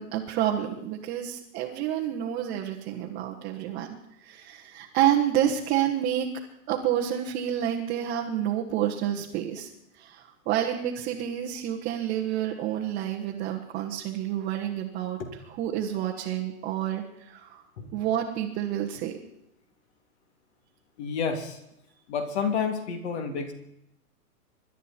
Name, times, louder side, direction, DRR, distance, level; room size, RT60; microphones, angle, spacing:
voice 1, 0.0-3.9 4.2-6.3 6.7-15.2 15.6-17.6 17.9-19.2, right 11 dB, 20° right, -1 dB, 1.2 m, -29 dB
voice 2, 21.0-21.6 22.1-23.5, left 6 dB, 45° left, 6 dB, 2.9 m, -30 dB
26.0 x 12.0 x 4.4 m, 0.82 s
hypercardioid pair, 160°, 44 cm